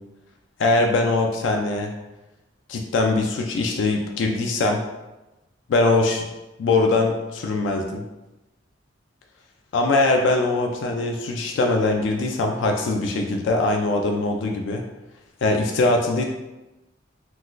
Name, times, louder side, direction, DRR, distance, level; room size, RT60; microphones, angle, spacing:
voice 1, 0.6-1.9 2.7-4.8 5.7-6.3 6.6-8.0 9.7-14.8 15.4-16.2, left 2 dB, 70° left, 2 dB, 0.3 m, -22 dB
3.7 x 2.3 x 2.5 m, 1.0 s
head